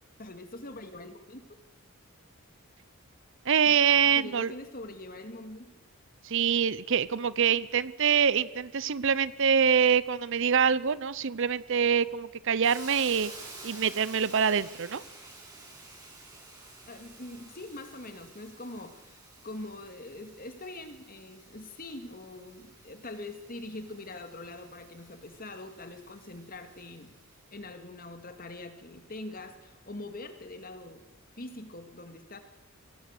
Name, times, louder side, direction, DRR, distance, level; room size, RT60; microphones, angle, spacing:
voice 1, 0.2-1.6 3.7-3.8 4.1-5.7 16.9-27.1 27.5-31.0 31.4-32.4, left 2 dB, 45° left, 7 dB, 2.3 m, -43 dB
voice 2, 3.5-4.5 6.2-13.3 13.6-15.0, right 7 dB, 60° right, 19 dB, 0.7 m, -25 dB
Hiss, 12.6-27.4, right 2 dB, 20° right, 5.7 m, -51 dB
24.5 x 18.0 x 6.7 m, 1.2 s
head